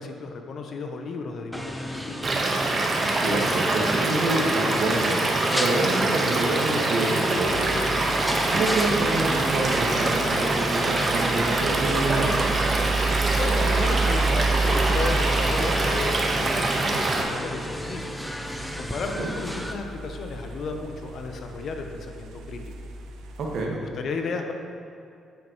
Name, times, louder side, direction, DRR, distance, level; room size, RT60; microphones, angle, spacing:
voice 1, 0.0-2.3 13.3-18.0 18.8-22.6 23.7-24.5, left 3 dB, 60° left, 4 dB, 0.8 m, -33 dB
sound 1, 1.5-19.7, equal, ahead, 0.7 m, -34 dB
Stream / Liquid, 2.2-17.2, right 2 dB, 40° right, 1.2 m, -25 dB
voice 2, 3.2-5.2 5.5-7.7 8.5-12.5 19.2-19.3 23.4-23.8, right 2 dB, 65° right, -1 dB, 1.6 m, -27 dB
sound 2, 7.5-23.6, right 3 dB, 90° right, 0.6 m, -31 dB
8.9 x 7.7 x 3.1 m, 2.6 s
cardioid pair, 90°, 0 cm